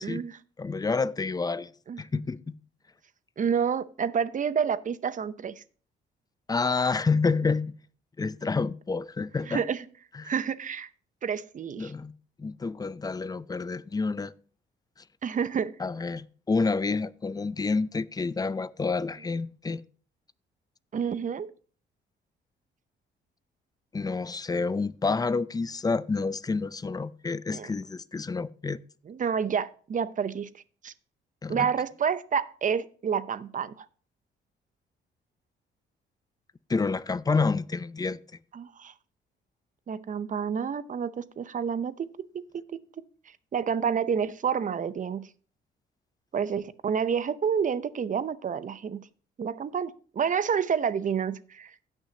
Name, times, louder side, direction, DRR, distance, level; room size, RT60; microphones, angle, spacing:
voice 1, 0.0-0.4 1.9-2.0 3.4-5.6 9.5-9.9 10.2-10.9 11.2-11.9 15.2-15.7 20.9-21.5 27.5-27.7 29.1-30.5 30.8-30.9 31.5-33.9 38.5-38.9 39.9-42.1 42.3-42.8 43.5-45.3 46.3-49.1 49.4-51.7, right 7 dB, 40° right, 0.7 m, -29 dB
voice 2, 0.6-1.7 2.0-2.6 6.5-7.7 8.2-9.6 10.1-10.3 11.8-12.1 12.4-14.3 15.8-19.8 23.9-28.8 31.4-31.7 36.7-38.2, left 4 dB, 20° left, 0.5 m, -28 dB
16.5 x 6.2 x 2.8 m
cardioid pair, 90°, 20 cm